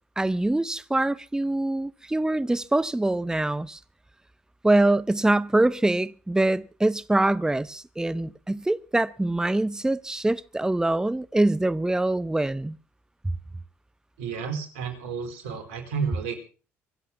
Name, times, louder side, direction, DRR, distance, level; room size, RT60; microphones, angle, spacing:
voice 1, 0.2-3.8 4.6-12.8, right 2 dB, 10° right, 0.9 m, -24 dB
voice 2, 14.2-16.4, right 6 dB, 85° right, 4.2 m, -31 dB
24.5 x 8.2 x 7.1 m
hypercardioid pair, 60°, 6 cm